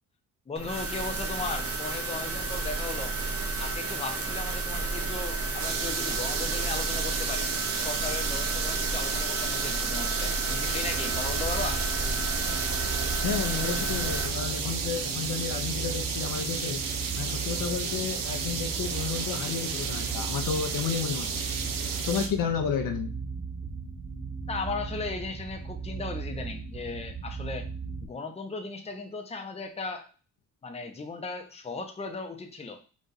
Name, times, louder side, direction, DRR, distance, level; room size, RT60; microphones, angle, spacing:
voice 1, 0.5-3.1 3.6-7.5 7.8-11.8 24.5-27.7 28.0-30.1 30.6-32.8, left 3 dB, 20° left, 4 dB, 0.7 m, -36 dB
sound 1, 0.6-14.3, right 3 dB, 40° right, 0.9 m, -31 dB
sound 2, 5.6-22.3, right 6 dB, 70° right, 0.8 m, -32 dB
sound 3, 10.7-28.1, right 5 dB, 20° right, 0.6 m, -37 dB
voice 2, 13.2-16.8 17.1-21.4 22.0-23.1, left 6 dB, 70° left, 6 dB, 0.7 m, -31 dB
4.1 x 2.4 x 3.9 m, 0.35 s
cardioid pair, 105°, 34 cm